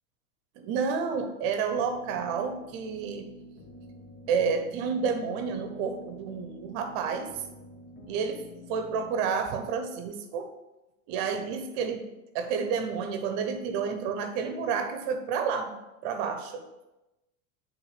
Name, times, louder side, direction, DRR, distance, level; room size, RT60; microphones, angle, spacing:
voice 1, 0.6-3.3 4.3-7.4 8.1-8.4 8.7-10.5 11.1-12.0 12.3-15.8 16.0-16.6, right 6 dB, 50° right, 6 dB, 0.8 m, -30 dB
sound 1, 1.7-9.1, equal, 25° left, 0.8 m, -47 dB
9.7 x 3.8 x 3.2 m, 1.0 s
hypercardioid pair, 115°, 40 cm